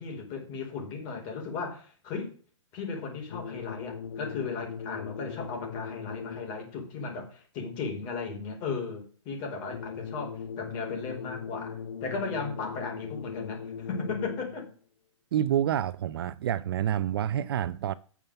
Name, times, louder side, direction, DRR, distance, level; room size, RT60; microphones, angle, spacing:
voice 1, 0.0-2.3 2.7-14.7, left 4 dB, 25° left, 4.6 m, -36 dB
sound 1, 3.3-6.7 9.7-14.7, left 7 dB, 70° left, 1.4 m, -39 dB
voice 2, 15.3-17.9, right 10 dB, 45° right, 0.6 m, -28 dB
9.2 x 7.3 x 7.0 m
hypercardioid pair, 155°, 17 cm